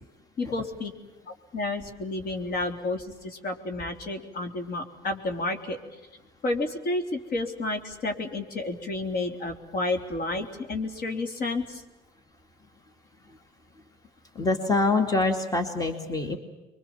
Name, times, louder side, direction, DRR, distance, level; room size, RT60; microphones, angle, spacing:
voice 1, 0.4-0.9 1.5-5.8 6.4-11.8, left 2 dB, 60° left, 5 dB, 3.4 m, -31 dB
voice 2, 14.3-16.4, left 3 dB, 20° left, 6 dB, 2.5 m, -25 dB
27.5 x 23.5 x 7.3 m, 1.1 s
cardioid pair, 110°, 17 cm